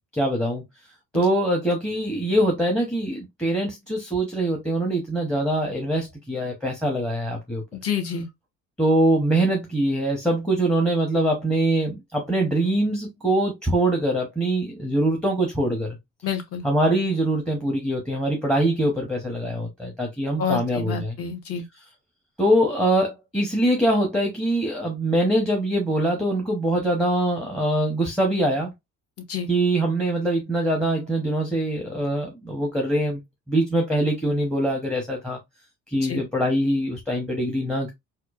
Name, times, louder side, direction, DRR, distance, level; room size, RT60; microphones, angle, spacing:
voice 1, 0.1-0.6 1.1-7.6 8.8-16.0 16.6-21.2 22.4-28.7 29.5-33.2 33.5-35.4 35.9-37.9, right 1 dB, 5° left, 0.7 m, -23 dB
voice 2, 7.7-8.3 16.2-16.6 20.4-21.6 29.3-29.5 36.0-36.2, left 7 dB, 50° left, 1.0 m, -28 dB
4.3 x 2.3 x 2.3 m
cardioid pair, 145°, 30 cm